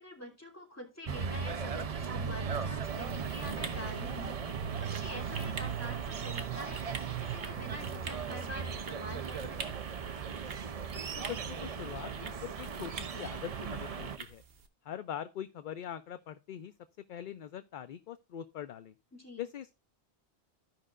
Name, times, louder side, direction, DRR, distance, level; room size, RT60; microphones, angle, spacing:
voice 1, 0.0-9.8 19.1-19.5, left 1 dB, 15° left, 2.8 m, -46 dB
sound 1, 1.1-14.2, right 6 dB, 45° right, 0.5 m, -37 dB
sound 2, 2.8-14.7, right 5 dB, 65° right, 1.2 m, -47 dB
voice 2, 11.1-14.4 14.8-16.7 17.1-18.9 19.4-19.7, left 10 dB, 60° left, 0.6 m, -42 dB
15.0 x 5.4 x 2.4 m
omnidirectional pair, 1.1 m